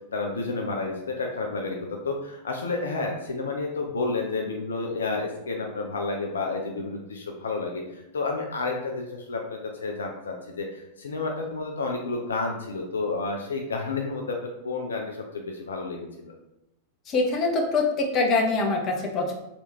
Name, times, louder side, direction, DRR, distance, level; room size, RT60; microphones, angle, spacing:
voice 1, 0.1-1.8 2.0-7.8 8.1-16.3, left 3 dB, 70° left, 1 dB, 0.5 m, -30 dB
voice 2, 17.1-19.3, left 3 dB, 30° left, 1 dB, 0.8 m, -24 dB
3.4 x 2.8 x 4.3 m, 0.93 s
figure-of-eight pair, 90°, 0 cm